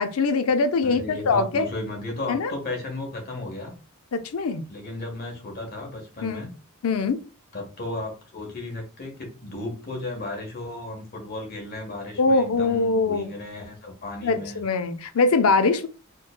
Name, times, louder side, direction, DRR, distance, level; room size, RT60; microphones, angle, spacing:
voice 1, 0.0-1.7 2.3-2.5 4.1-4.6 6.2-6.4 6.8-7.2 12.2-13.3 14.2-15.9, left 4 dB, 80° left, 0.5 m, -22 dB
voice 2, 0.8-3.7 4.7-6.5 7.5-14.6, left 2 dB, 45° left, 1.3 m, -34 dB
4.4 x 3.1 x 2.2 m
head